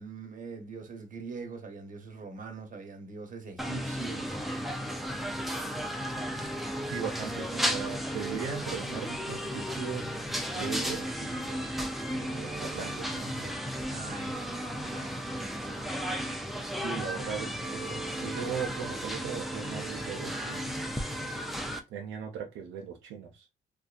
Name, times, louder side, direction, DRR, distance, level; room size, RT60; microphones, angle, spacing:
voice 1, 0.0-4.4 13.9-15.7, right 4 dB, 40° right, 0.9 m, -43 dB
sound 1, 3.6-21.8, equal, ahead, 0.5 m, -34 dB
voice 2, 6.8-10.1 10.5-13.8 16.8-20.8 21.9-23.5, right 7 dB, 80° right, 0.6 m, -39 dB
2.6 x 2.2 x 2.4 m
cardioid pair, 90°, 20 cm